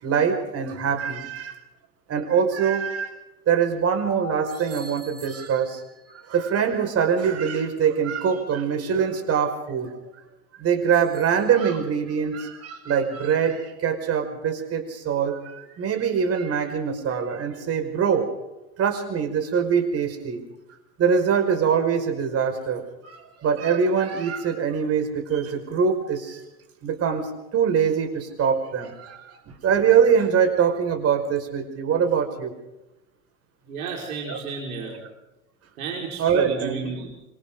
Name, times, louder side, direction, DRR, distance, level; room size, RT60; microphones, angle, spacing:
voice 1, 0.0-1.6 2.1-3.1 3.5-5.8 6.3-9.9 10.6-18.3 18.8-20.4 21.0-26.4 26.8-32.5 34.3-34.4 36.2-36.8, right 7 dB, 35° right, 5 dB, 5.4 m, -23 dB
voice 2, 33.6-35.0 35.8-37.1, right 5 dB, 70° right, -2 dB, 5.4 m, -32 dB
26.0 x 25.5 x 3.9 m, 0.98 s
hypercardioid pair, 95°, 44 cm